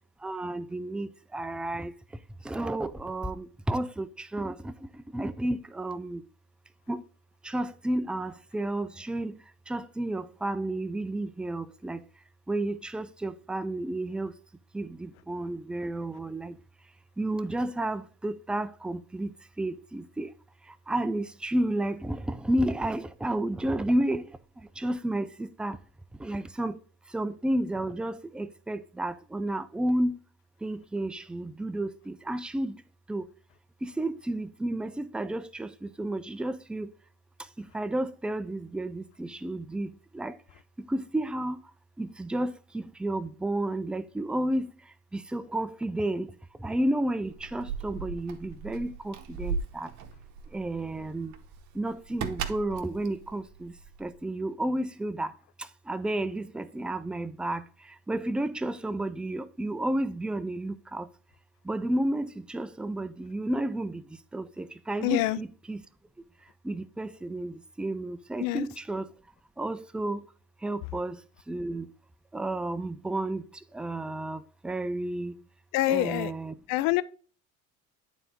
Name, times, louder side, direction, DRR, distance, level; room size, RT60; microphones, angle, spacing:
voice 1, 0.2-1.9 2.4-4.7 5.1-6.2 6.9-7.0 7.4-9.3 9.7-12.0 12.5-14.3 14.7-16.5 17.2-19.3 19.6-20.3 20.9-24.2 24.8-25.8 26.2-26.7 27.1-30.2 30.6-32.8 33.1-33.2 33.8-36.9 37.6-39.9 40.1-40.3 40.9-41.6 42.0-44.7 45.1-46.3 46.6-49.9 50.5-51.3 51.8-53.7 54.0-55.3 55.9-57.6 58.1-61.1 61.7-64.0 64.3-65.8 66.6-69.1 69.6-70.2 70.6-71.2 71.5-71.9 72.3-73.4 73.7-75.3 75.9-76.5, right 1 dB, 5° right, 0.3 m, -31 dB
Keys jangling, 47.2-54.2, right 5 dB, 50° right, 1.0 m, -38 dB
voice 2, 65.0-65.4 68.4-68.7 75.7-76.3 76.7-77.0, left 16 dB, 65° left, 0.5 m, -25 dB
8.9 x 4.0 x 3.8 m
hypercardioid pair, 80°, 37 cm